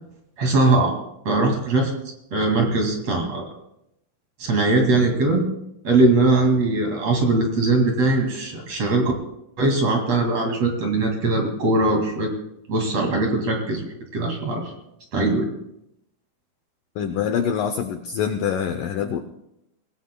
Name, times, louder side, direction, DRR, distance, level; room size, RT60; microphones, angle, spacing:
voice 1, 0.4-0.9 1.2-1.9 2.3-3.4 4.4-5.4 5.8-9.1 9.6-12.3 12.7-13.9 14.1-14.7 15.1-15.5, right 2 dB, 45° right, 1 dB, 3.0 m, -20 dB
voice 2, 17.0-19.2, left 8 dB, 80° left, 7 dB, 1.9 m, -25 dB
24.5 x 18.0 x 2.2 m, 0.82 s
omnidirectional pair, 4.7 m